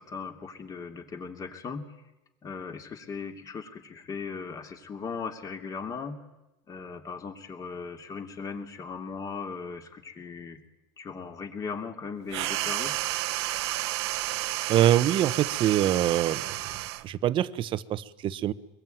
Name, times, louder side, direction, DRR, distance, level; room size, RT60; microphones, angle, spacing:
voice 1, 0.0-1.9 2.4-6.2 6.7-10.6 11.0-13.0, left 5 dB, 25° left, 6 dB, 3.0 m, -38 dB
sound 1, 12.3-17.1, right 16 dB, 85° right, 1.2 m, -31 dB
voice 2, 14.7-16.5 17.0-18.5, right 12 dB, 40° right, 16 dB, 1.0 m, -24 dB
24.5 x 21.5 x 9.4 m, 0.97 s
supercardioid pair, 140°, 14 cm